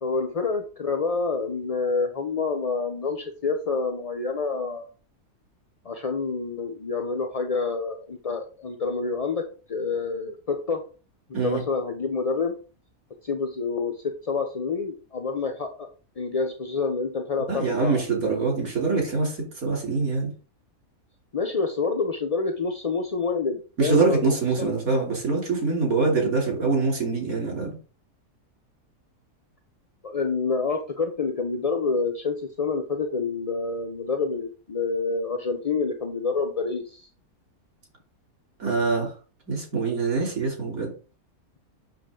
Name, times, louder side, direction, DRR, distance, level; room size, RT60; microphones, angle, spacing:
voice 1, 0.0-4.9 5.8-10.8 11.4-12.5 13.2-15.9 16.2-18.0 21.3-24.8 30.0-37.1, left 4 dB, 35° left, 4 dB, 0.6 m, -28 dB
voice 2, 17.5-20.3 23.8-27.7 38.6-39.1 39.5-40.9, right 4 dB, 65° right, 0 dB, 3.6 m, -24 dB
7.7 x 6.7 x 3.8 m, 0.37 s
omnidirectional pair, 1.6 m